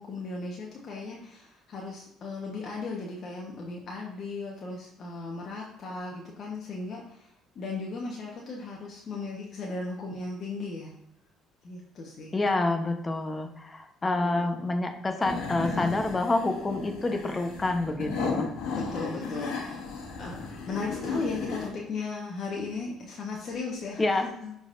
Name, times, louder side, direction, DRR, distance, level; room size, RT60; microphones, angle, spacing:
voice 1, 0.0-10.9 11.6-12.4 14.0-14.5 18.7-20.4 20.7-24.6, left 3 dB, 50° left, -2 dB, 1.2 m, -37 dB
voice 2, 12.3-18.5 24.0-24.3, left 2 dB, 25° left, 6 dB, 1.0 m, -28 dB
sound 1, 15.2-21.7, left 4 dB, 75° left, 1.6 m, -34 dB
9.8 x 4.0 x 2.6 m, 0.80 s
supercardioid pair, 80°, 0 cm